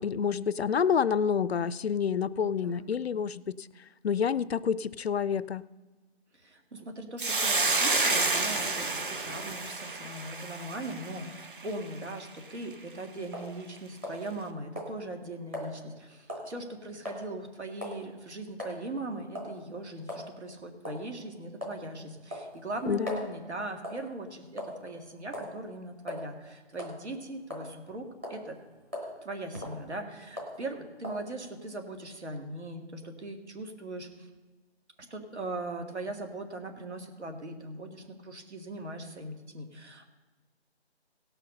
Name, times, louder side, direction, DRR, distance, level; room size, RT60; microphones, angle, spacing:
voice 1, 0.0-3.7 4.0-5.6 22.8-23.2, left 7 dB, 65° left, 18 dB, 0.5 m, -28 dB
voice 2, 6.3-28.6 29.2-34.3 35.0-40.1, right 2 dB, 80° right, 5 dB, 2.1 m, -40 dB
Hiss, 7.2-11.7, right 3 dB, 50° right, 0.9 m, -29 dB
sound 1, 13.3-13.5 14.0-14.5 14.8-14.9 15.5-15.7 16.3-16.5 17.1-17.2 17.8-18.0 18.6-18.8 19.4-19.6 20.1-20.3 20.8-21.0 21.6-21.8 22.3-23.3 23.8-24.1 24.6-24.9 25.3-25.5 26.1-26.2 26.7-27.0 27.5-27.9 28.2-28.4 28.9-29.1 29.5-29.8 30.4-30.6 31.0-31.2, left 1 dB, 10° right, 0.9 m, -38 dB
17.0 x 5.8 x 5.4 m, 1.3 s
figure-of-eight pair, 175°, 34 cm